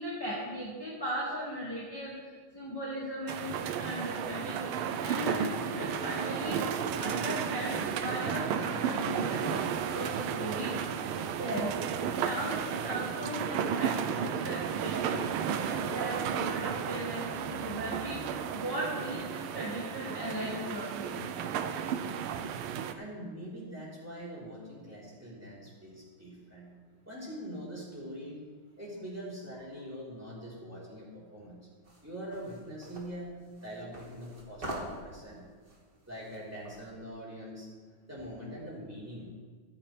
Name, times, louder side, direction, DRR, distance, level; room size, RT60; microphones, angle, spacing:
voice 1, 0.0-6.6 7.0-11.8 12.1-21.6, equal, 10° left, -6 dB, 1.9 m, -38 dB
sound 1, 3.3-22.9, right 8 dB, 80° right, 1.6 m, -33 dB
voice 2, 22.9-26.7 27.1-28.4 28.8-31.7 32.0-33.3 33.6-35.4 36.1-37.7 38.1-39.3, equal, 5° right, -7 dB, 3.9 m, -43 dB
sound 2, 31.8-36.9, right 1 dB, 25° right, 2.2 m, -45 dB
24.0 x 8.5 x 3.4 m, 1.5 s
omnidirectional pair, 2.3 m